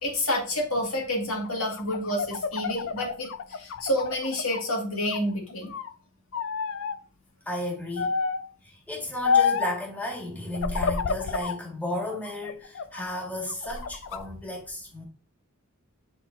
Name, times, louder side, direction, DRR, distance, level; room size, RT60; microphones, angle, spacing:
voice 1, 0.0-5.7, left 1 dB, 80° left, 2.3 m, -29 dB
sound 1, 1.4-4.7 5.0-5.9 6.3-7.0 8.0-8.5 9.2-9.8 10.5-11.6 12.1-13.0 13.5-14.2, left 5 dB, 65° left, 0.5 m, -29 dB
voice 2, 7.5-8.1 8.6-15.0, left 1 dB, 10° left, 2.0 m, -33 dB
9.3 x 4.1 x 2.8 m
head